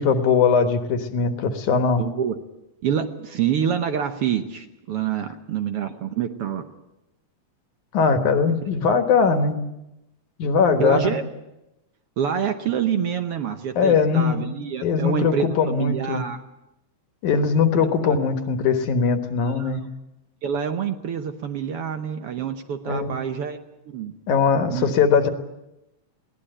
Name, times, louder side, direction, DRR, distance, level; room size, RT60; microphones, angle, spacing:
voice 1, 0.0-2.0 7.9-9.5 10.4-11.1 13.8-14.4 14.8-16.2 17.2-19.8 22.9-23.2 24.3-25.3, left 5 dB, 80° left, 8 dB, 2.9 m, -20 dB
voice 2, 2.0-2.4 2.8-6.7 8.6-8.7 10.8-11.3 12.2-16.4 18.1-18.2 19.4-19.8 20.4-23.6 23.9-24.1 24.7-24.9, right 8 dB, 60° right, 7 dB, 1.6 m, -26 dB
21.5 x 17.5 x 9.0 m, 0.92 s
omnidirectional pair, 3.4 m